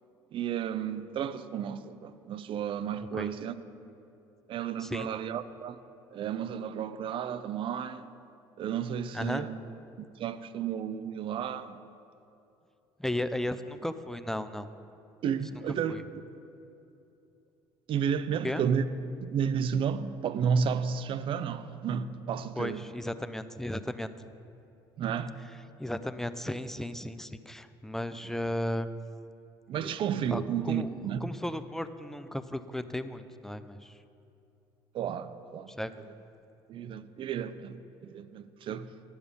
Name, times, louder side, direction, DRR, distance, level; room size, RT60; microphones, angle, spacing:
voice 1, 0.3-3.5 4.5-5.8 6.1-8.1 8.6-9.6 10.0-11.8 15.2-16.2 17.9-18.8 19.2-22.8 25.0-25.3 29.7-31.3 34.9-35.7 36.7-38.9, right 7 dB, 55° right, 0.5 m, -32 dB
voice 2, 9.1-9.5 13.0-14.7 15.9-16.0 18.4-18.6 22.6-24.1 25.8-28.9 29.8-29.9 30.3-34.0 35.7-35.9, left 1 dB, 5° left, 0.4 m, -35 dB
11.0 x 7.1 x 5.2 m
supercardioid pair, 80°, 11 cm